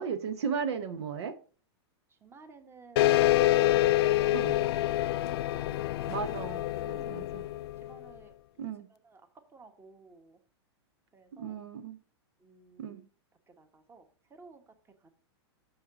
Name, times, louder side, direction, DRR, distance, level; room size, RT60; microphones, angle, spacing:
voice 1, 0.0-1.4 4.3-4.6 6.1-7.4 8.6-8.9 11.4-12.0 12.8-13.0, right 6 dB, 70° right, 0.9 m, -35 dB
voice 2, 2.1-4.6 5.4-6.0 6.9-7.4 7.8-8.3 8.9-9.2 9.5-10.4 11.1-11.6 12.4-13.1 13.5-15.1, right 4 dB, 15° right, 1.2 m, -54 dB
sound 1, 3.0-8.0, left 15 dB, 60° left, 0.4 m, -26 dB
6.5 x 6.4 x 3.7 m
hypercardioid pair, 115°, 14 cm